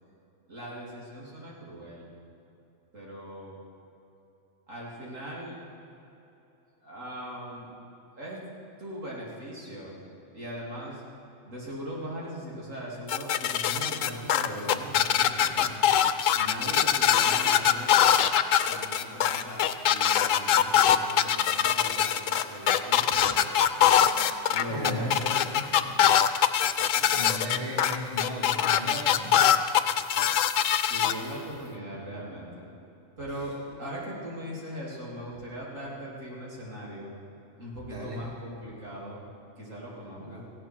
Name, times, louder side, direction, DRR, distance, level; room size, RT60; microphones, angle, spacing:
voice 1, 0.5-2.1 2.9-3.6 4.7-5.6 6.8-7.7 8.2-8.4 8.8-10.0 10.3-11.0 11.4-15.8 16.3-17.9 18.7-23.5 23.8-25.9 26.9-27.1 30.8-32.7 33.2-37.1 37.6-39.2 39.6-40.4, equal, 80° right, -5 dB, 3.4 m, -39 dB
sound 1, 13.1-31.1, left 9 dB, 85° left, 1.0 m, -22 dB
voice 2, 24.7-25.0 27.1-29.4 37.8-38.2 40.2-40.4, left 1 dB, 45° right, -4 dB, 2.3 m, -36 dB
17.5 x 15.5 x 4.6 m, 2.9 s
omnidirectional pair, 1.3 m